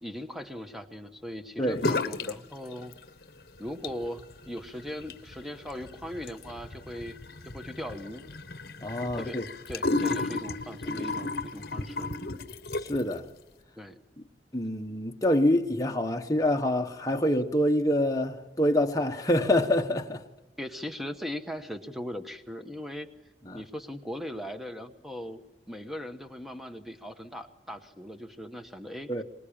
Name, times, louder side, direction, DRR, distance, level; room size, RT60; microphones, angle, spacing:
voice 1, 0.0-2.9 3.6-7.2 7.4-8.2 9.0-9.4 9.7-12.1 13.8-14.0 20.6-23.1 23.5-25.4 25.7-29.2, equal, ahead, 1.1 m, -39 dB
sound 1, 1.8-2.4 2.6-3.3 3.7-13.1, left 2 dB, 55° left, 1.2 m, -34 dB
voice 2, 8.8-9.4 12.8-13.3 14.5-20.2 23.5-23.6 29.1-29.2, left 1 dB, 20° left, 1.3 m, -26 dB
24.0 x 21.0 x 8.8 m
head